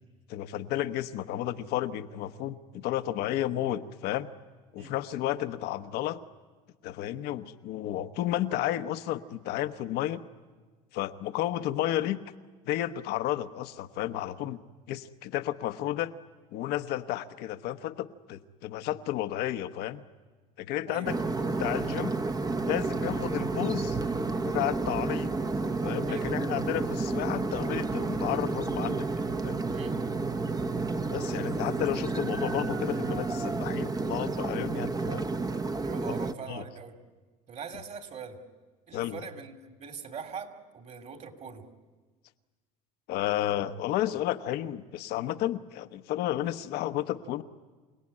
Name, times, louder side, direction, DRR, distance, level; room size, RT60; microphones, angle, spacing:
voice 1, 0.3-4.3 4.7-6.2 6.8-10.2 10.9-12.2 12.7-14.6 14.9-16.1 16.5-20.0 20.6-22.2 22.6-24.0 24.4-25.3 25.8-29.6 31.1-35.3 36.5-36.6 38.9-39.2 43.1-47.4, left 13 dB, 65° left, 9 dB, 1.1 m, -32 dB
voice 2, 20.9-21.4 26.0-26.4 29.7-29.9 35.8-37.0 37.5-38.4 38.9-41.7, right 6 dB, 45° right, 5 dB, 3.0 m, -42 dB
sound 1, 21.0-36.3, right 3 dB, 20° right, 1.1 m, -31 dB
28.0 x 18.0 x 9.9 m, 1.4 s
supercardioid pair, 90°, 18 cm